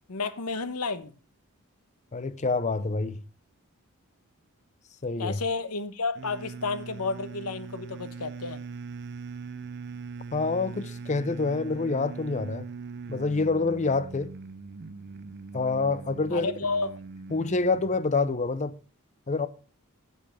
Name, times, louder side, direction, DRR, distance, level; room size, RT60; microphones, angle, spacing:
voice 1, 0.1-1.1 5.2-8.6 16.3-17.0, left 4 dB, 90° left, 1.1 m, -31 dB
voice 2, 2.1-3.2 5.0-5.4 10.3-12.6 13.1-14.3 15.5-16.5 17.3-18.7 19.3-19.5, left 3 dB, 35° left, 0.6 m, -27 dB
sound 1, 6.1-18.1, right 4 dB, 50° right, 0.5 m, -41 dB
9.2 x 7.5 x 6.0 m
head